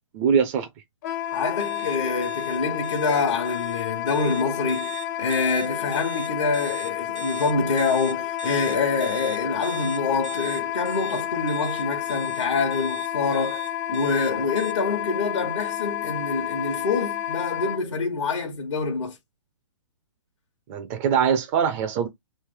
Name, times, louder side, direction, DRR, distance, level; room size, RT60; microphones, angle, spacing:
voice 1, 0.1-0.7 20.7-22.1, right 7 dB, 30° right, 0.5 m, -22 dB
Wind instrument woodwind instrument, 1.0-17.8, left 11 dB, 35° left, 0.7 m, -30 dB
voice 2, 1.3-19.2, left 4 dB, 70° left, 1.1 m, -26 dB
sound 1, 1.6-14.7, right 10 dB, 85° right, 0.8 m, -42 dB
3.2 x 2.6 x 3.6 m
figure-of-eight pair, 130°, 16 cm